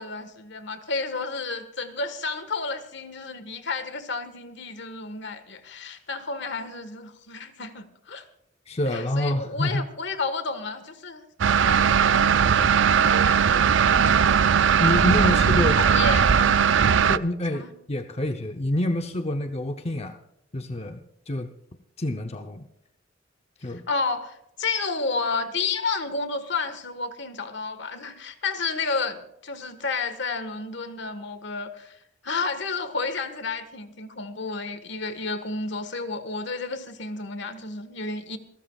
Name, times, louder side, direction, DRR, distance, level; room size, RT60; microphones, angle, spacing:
voice 1, 0.0-8.2 8.8-11.2 11.5-14.1 15.2-16.6 17.5-17.7 23.6-38.4, left 4 dB, 65° left, 10 dB, 1.6 m, -31 dB
voice 2, 8.7-9.9 14.8-15.8 16.9-20.2 20.5-21.0 21.3-21.5 22.0-22.7 23.6-23.8, left 1 dB, 35° left, 6 dB, 0.8 m, -27 dB
sound 1, 11.4-17.2, right 7 dB, 70° right, 0.5 m, -19 dB
27.0 x 13.0 x 2.4 m, 0.80 s
head